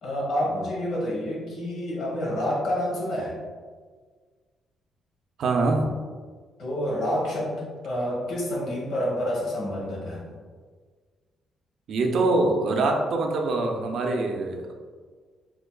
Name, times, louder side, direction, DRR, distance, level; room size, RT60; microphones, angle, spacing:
voice 1, 0.0-3.4 6.6-10.2, equal, 70° left, -4 dB, 1.2 m, -28 dB
voice 2, 5.4-5.9 11.9-14.7, right 2 dB, 65° right, 3 dB, 0.5 m, -24 dB
3.7 x 2.9 x 2.3 m, 1.5 s
cardioid pair, 90°, 0 cm